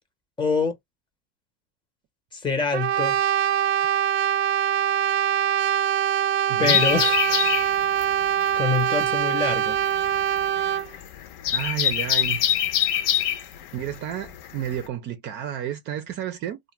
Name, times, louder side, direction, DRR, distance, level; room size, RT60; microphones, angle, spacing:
voice 1, 0.4-0.8 2.3-3.2 6.6-7.4 8.6-9.8, left 4 dB, 15° left, 0.7 m, -25 dB
Brass instrument, 2.7-10.9, right 10 dB, 85° right, 0.5 m, -23 dB
voice 2, 6.5-6.8 11.5-12.5 13.7-16.6, right 11 dB, 35° right, 0.4 m, -31 dB
sound 1, 6.6-14.9, left 10 dB, 60° left, 0.7 m, -25 dB
2.4 x 2.1 x 3.0 m
supercardioid pair, 130°, 32 cm